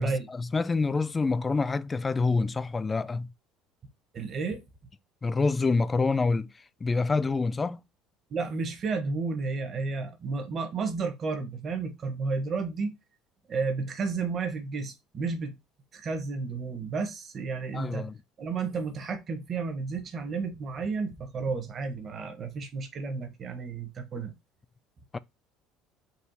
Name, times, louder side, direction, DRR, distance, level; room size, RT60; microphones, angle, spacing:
voice 1, 0.4-3.3 5.2-6.5 6.8-7.8 17.7-18.1 25.1-25.2, left 3 dB, 20° left, 0.3 m, -26 dB
voice 2, 4.1-4.6 8.3-13.0 13.5-15.6 15.9-18.1 18.4-24.3, right 4 dB, 40° right, 1.1 m, -32 dB
4.2 x 2.4 x 4.0 m
supercardioid pair, 110°, 0 cm